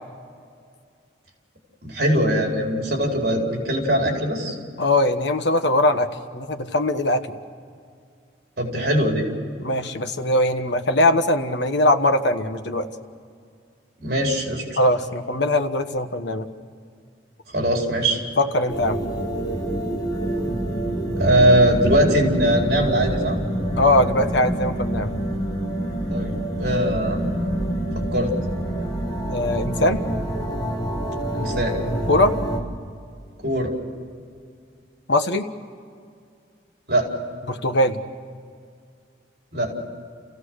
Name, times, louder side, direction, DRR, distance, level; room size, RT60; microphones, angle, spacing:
voice 1, 1.8-4.5 8.6-9.3 14.0-14.8 17.5-18.2 21.2-23.4 26.1-27.2 28.1-28.3 31.3-31.8 33.4-33.7 36.9-37.1 39.5-39.7, right 1 dB, 60° right, 0 dB, 4.8 m, -21 dB
voice 2, 4.8-7.3 9.6-12.9 14.8-16.5 18.4-19.0 23.8-25.1 29.3-30.0 32.1-32.3 35.1-35.5 37.5-38.0, left 1 dB, 85° left, 6 dB, 1.3 m, -21 dB
sound 1, 18.7-32.6, right 1 dB, 25° left, 2.7 m, -26 dB
30.0 x 16.0 x 6.5 m, 2.2 s
head